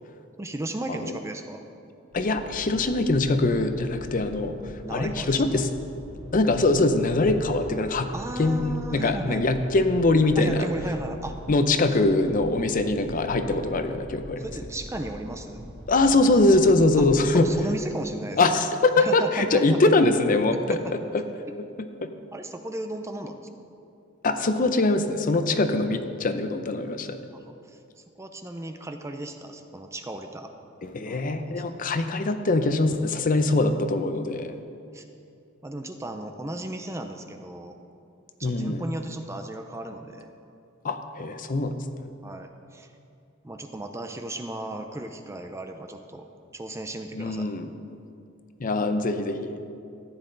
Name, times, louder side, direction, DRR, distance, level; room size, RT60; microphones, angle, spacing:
voice 1, 0.4-1.7 4.8-5.6 8.1-9.4 10.4-11.4 14.4-15.6 17.3-18.4 19.0-19.8 20.5-21.0 22.3-23.5 27.3-27.4 27.7-30.5 31.0-31.5 34.9-35.0 35.6-37.8 38.4-40.3 42.2-42.9 43.4-46.3 46.5-47.5, right 1 dB, 15° right, 6 dB, 0.5 m, -35 dB
voice 2, 2.1-5.7 6.3-8.1 8.4-10.7 11.5-14.5 15.9-17.5 18.4-20.8 21.1-21.2 21.8-22.1 24.2-27.2 30.8-34.6 38.4-38.8 40.8-41.7 47.1-47.7 48.6-49.6, left 2 dB, 40° left, 8 dB, 0.6 m, -23 dB
sound 1, 2.1-17.6, equal, 80° right, 2.9 m, -43 dB
14.0 x 9.6 x 3.9 m, 2.5 s
head